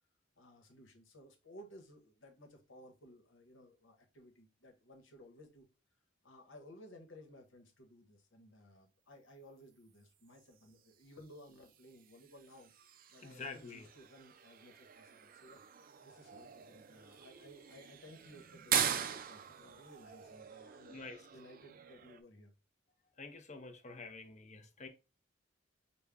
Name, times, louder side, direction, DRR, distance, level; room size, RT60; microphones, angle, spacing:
voice 1, 0.4-5.7 6.2-12.7 13.1-15.6 16.0-21.0 21.3-22.5, equal, 90° left, 1.1 m, -57 dB
sound 1, 10.3-22.2, right 9 dB, 50° right, 0.4 m, -42 dB
voice 2, 13.2-13.9 20.9-21.2 23.2-24.9, left 4 dB, 40° left, 0.7 m, -48 dB
5.3 x 2.2 x 3.5 m
head